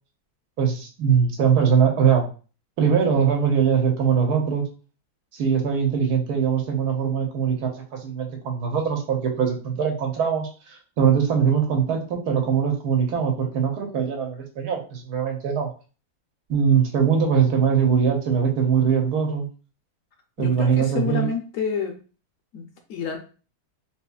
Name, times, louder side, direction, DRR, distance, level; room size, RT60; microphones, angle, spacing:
voice 1, 0.6-2.3 2.8-4.6 5.3-15.7 16.5-19.5 20.4-21.3, right 7 dB, 85° right, 2 dB, 1.3 m, -22 dB
voice 2, 20.4-21.9 22.5-23.2, left 6 dB, 70° left, 4 dB, 0.8 m, -28 dB
3.8 x 2.8 x 2.3 m, 0.37 s
omnidirectional pair, 1.6 m